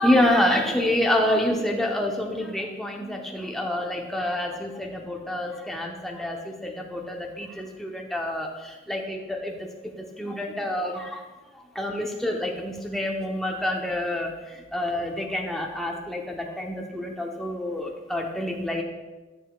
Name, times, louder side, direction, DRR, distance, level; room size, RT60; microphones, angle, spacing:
voice 1, 0.0-11.3 11.5-18.8, left 1 dB, ahead, 0 dB, 0.8 m, -27 dB
13.5 x 6.9 x 2.3 m, 1.2 s
head